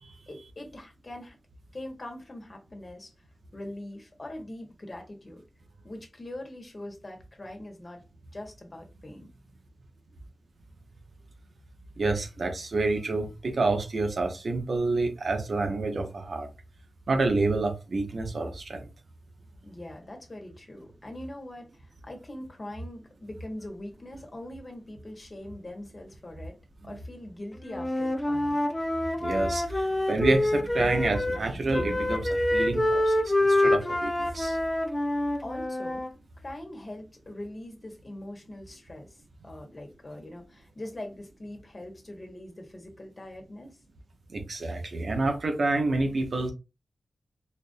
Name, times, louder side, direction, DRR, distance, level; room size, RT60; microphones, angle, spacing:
voice 1, 0.3-1.4 1.7-3.1 3.5-5.4 5.8-8.0 8.3-9.3 19.6-26.6 26.8-28.6 35.4-36.0 36.4-43.8, left 1 dB, 40° left, 1.4 m, -42 dB
voice 2, 12.0-16.5 17.1-18.9 26.8-26.9 29.2-34.6 44.3-46.5, right 3 dB, 70° right, 1.0 m, -28 dB
Wind instrument woodwind instrument, 27.7-31.4 31.7-36.1, left 1 dB, 25° left, 0.7 m, -26 dB
4.4 x 2.6 x 2.6 m
cardioid pair, 50°, 0 cm